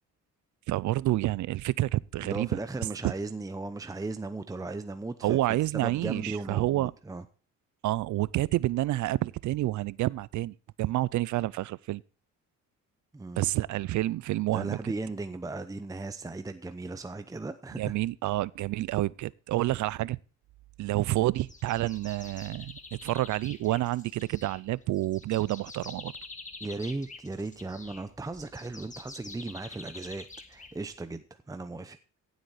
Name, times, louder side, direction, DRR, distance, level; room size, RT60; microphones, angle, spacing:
voice 1, 0.7-2.5 5.2-6.9 7.8-12.0 13.4-14.9 17.8-20.2 20.8-26.1, right 16 dB, 70° right, 0.5 m, -29 dB
voice 2, 2.2-7.3 13.1-13.5 14.5-17.9 26.6-32.0, right 3 dB, 10° right, 0.7 m, -37 dB
sound 1, 21.4-31.2, left 3 dB, 25° left, 1.8 m, -47 dB
16.0 x 8.2 x 4.1 m
cardioid pair, 90°, 30 cm